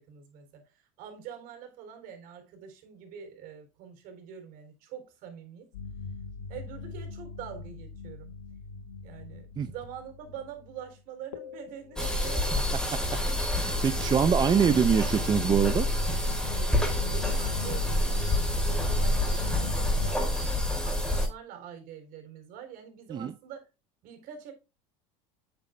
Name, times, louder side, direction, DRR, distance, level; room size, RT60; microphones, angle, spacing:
voice 1, 0.0-5.7 6.5-8.3 9.0-12.6 16.7-18.2 18.7-23.7 24.0-24.5, right 8 dB, 60° right, 3.8 m, -45 dB
sound 1, 5.7-10.9 11.3-20.1, left 4 dB, 90° left, 1.4 m, -40 dB
sound 2, 12.0-21.3, left 1 dB, 5° left, 3.7 m, -28 dB
voice 2, 13.4-15.9 23.1-23.3, right 7 dB, 25° right, 0.6 m, -24 dB
8.9 x 8.3 x 2.2 m
hypercardioid pair, 95°, 17 cm